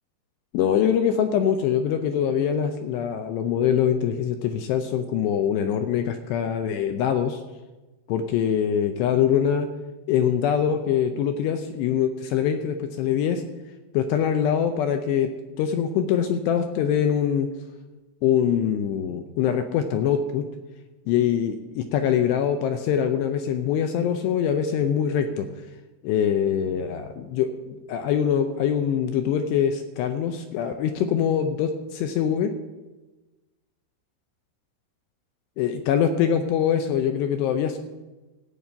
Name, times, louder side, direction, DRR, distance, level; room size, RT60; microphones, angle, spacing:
voice 1, 0.5-7.4 8.1-9.7 10.1-13.4 13.9-15.3 15.6-17.5 18.2-20.5 21.1-25.5 26.0-32.5 35.6-37.8, left 8 dB, 80° left, 7 dB, 2.5 m, -23 dB
15.5 x 5.6 x 8.6 m, 1.1 s
omnidirectional pair, 5.5 m